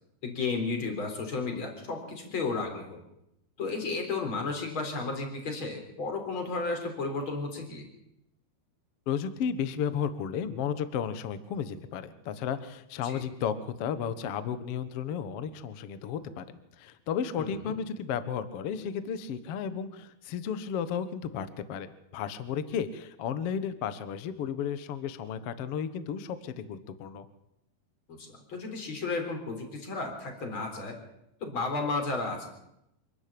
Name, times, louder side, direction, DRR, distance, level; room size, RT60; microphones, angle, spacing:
voice 1, 0.2-3.0 3.6-7.9 13.0-13.2 17.4-17.8 28.1-30.9 31.4-32.5, left 3 dB, 30° left, 4 dB, 4.3 m, -33 dB
voice 2, 9.1-27.3, left 7 dB, 75° left, 12 dB, 1.3 m, -33 dB
26.5 x 12.0 x 8.7 m, 0.83 s
omnidirectional pair, 4.7 m